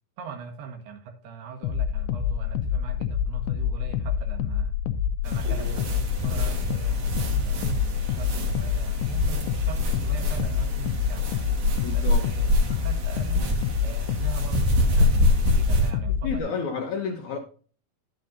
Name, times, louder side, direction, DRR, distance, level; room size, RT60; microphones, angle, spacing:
voice 1, 0.2-4.7 5.2-11.3 11.9-13.5 13.8-16.8 17.3-17.4, right 6 dB, 80° right, 4 dB, 3.5 m, -41 dB
sound 1, 1.6-16.4, left 8 dB, 85° left, 2.6 m, -27 dB
sound 2, 5.3-15.9, left 1 dB, 55° right, 2.6 m, -26 dB
voice 2, 11.8-12.2 16.2-17.4, left 5 dB, 65° left, 1 dB, 2.0 m, -30 dB
11.5 x 7.3 x 2.6 m, 0.41 s
omnidirectional pair, 4.6 m